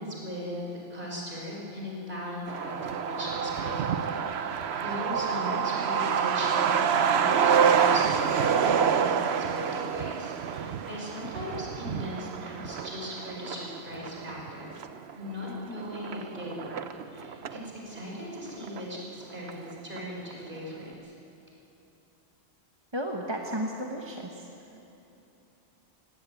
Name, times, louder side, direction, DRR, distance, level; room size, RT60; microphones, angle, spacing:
voice 1, 0.0-14.8 15.1-21.1, equal, 55° right, -3 dB, 5.5 m, -39 dB
Truck, 2.5-17.7 18.0-18.1 18.3-19.2 19.5-19.6 20.0-20.3, right 7 dB, 90° right, 1.1 m, -27 dB
voice 2, 22.9-24.5, right 1 dB, 25° right, 0 dB, 1.4 m, -33 dB
19.5 x 16.5 x 9.3 m, 2.9 s
omnidirectional pair, 1.1 m